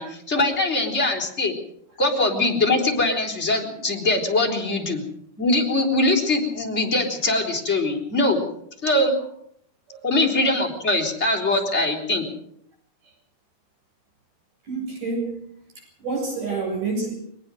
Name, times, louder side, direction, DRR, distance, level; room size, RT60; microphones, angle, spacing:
voice 1, 0.0-1.5 2.0-5.0 5.4-8.4 8.8-9.2 10.0-12.2, left 2 dB, 20° left, 1 dB, 4.4 m, -22 dB
voice 2, 14.6-15.5 16.0-17.1, right 3 dB, 85° right, 1 dB, 9.1 m, -28 dB
22.5 x 20.0 x 6.5 m, 0.68 s
omnidirectional pair, 3.6 m